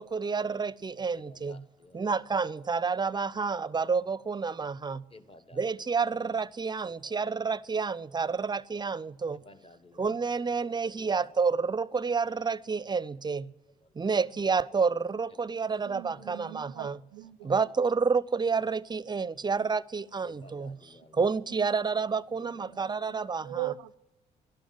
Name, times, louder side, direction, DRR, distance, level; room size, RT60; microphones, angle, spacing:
voice 1, 0.0-1.6 1.9-5.0 5.6-9.4 10.0-13.5 13.9-17.0 17.4-20.8 21.1-23.6, right 5 dB, 25° right, 0.5 m, -29 dB
voice 2, 1.1-2.2 5.1-5.8 6.8-7.4 9.3-10.2 10.6-11.3 12.8-12.9 13.7-14.1 15.3-15.8 16.1-16.5 17.4-17.5 20.2-21.4 21.7-21.8 22.4-22.9, left 2 dB, 30° left, 1.3 m, -55 dB
voice 3, 15.8-17.7 21.6-21.7 22.3-24.0, right 17 dB, 90° right, 0.4 m, -41 dB
12.0 x 11.5 x 9.9 m
supercardioid pair, 60°, 18 cm